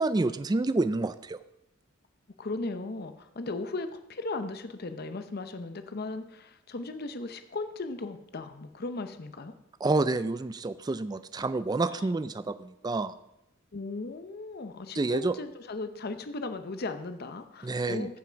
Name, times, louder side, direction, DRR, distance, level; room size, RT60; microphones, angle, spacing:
voice 1, 0.0-1.4 9.8-13.1 14.9-15.3 17.6-18.1, right 3 dB, 20° right, 13 dB, 0.3 m, -28 dB
voice 2, 2.4-9.5 11.8-12.1 13.7-18.2, left 3 dB, 50° left, 9 dB, 0.7 m, -37 dB
15.0 x 5.8 x 5.1 m, 0.85 s
head